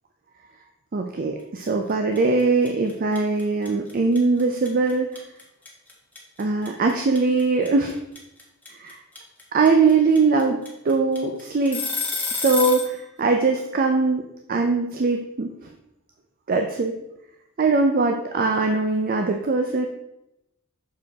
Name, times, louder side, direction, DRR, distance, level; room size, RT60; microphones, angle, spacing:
voice 1, 0.9-5.1 6.4-8.0 8.7-9.0 9.5-10.6 10.8-11.8 12.3-15.7 16.5-16.9 17.6-19.9, right 3 dB, 40° right, 3 dB, 0.5 m, -21 dB
sound 1, 1.6-1.9 2.1-12.9, left 4 dB, 5° left, 1.1 m, -29 dB
6.4 x 4.8 x 3.5 m, 0.86 s
head